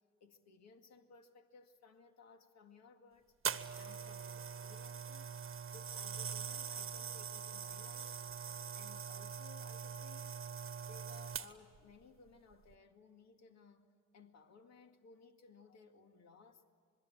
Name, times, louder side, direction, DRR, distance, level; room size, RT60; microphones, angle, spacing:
voice 1, 0.2-3.3 3.8-5.4 5.7-8.2 8.7-10.4 10.8-16.6, left 5 dB, 60° left, 2.2 m, -60 dB
sound 1, 3.4-11.8 12.5-12.7, right 7 dB, 45° right, 1.3 m, -43 dB
26.5 x 21.5 x 8.9 m
cardioid pair, 90°, 30 cm